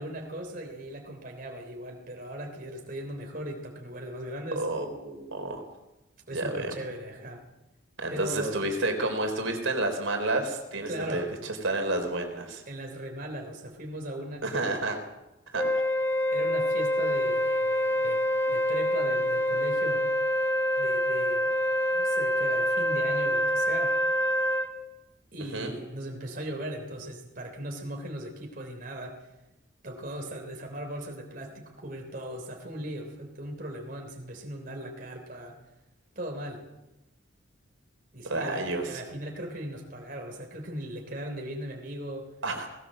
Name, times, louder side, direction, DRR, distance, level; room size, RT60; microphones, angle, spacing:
voice 1, 0.0-4.7 6.3-7.4 8.1-8.6 10.9-11.3 12.7-14.8 16.3-18.2 18.5-20.1 20.8-21.5 21.9-23.9 25.3-29.2 29.8-35.6 36.2-36.7 38.1-42.3, right 1 dB, 45° right, 1 dB, 3.4 m, -38 dB
voice 2, 4.6-5.6 6.3-6.8 8.0-12.6 14.4-15.0 15.5-15.8 25.5-25.7 38.3-39.0 42.4-42.7, right 2 dB, 75° right, 4 dB, 3.9 m, -30 dB
Wind instrument woodwind instrument, 15.6-24.7, equal, 10° left, 1.3 m, -26 dB
19.5 x 18.5 x 7.6 m, 0.98 s
head